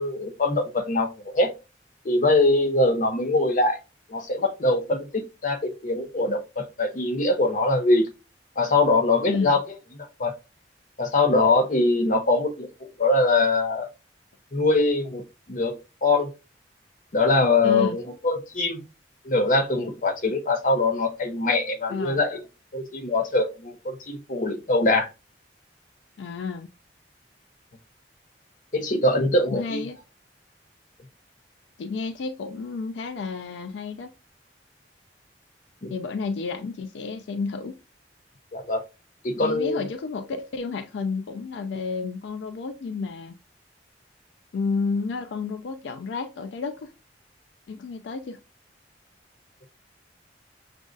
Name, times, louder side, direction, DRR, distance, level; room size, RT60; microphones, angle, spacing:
voice 1, 0.0-1.5 2.0-3.8 4.1-8.1 8.6-9.6 10.2-10.3 11.0-12.7 13.0-13.9 14.5-16.3 17.1-18.8 19.2-22.4 22.7-25.1 28.7-29.8 35.8-35.9 38.5-38.8 39.2-39.8, left 2 dB, 45° left, 0.7 m, -23 dB
voice 2, 9.3-9.6 17.6-18.0 21.9-22.2 26.2-26.7 29.5-30.0 31.8-34.1 35.9-37.8 39.4-43.3 44.5-46.9 47.7-48.4, left 4 dB, 85° left, 0.4 m, -31 dB
6.1 x 2.6 x 2.3 m
head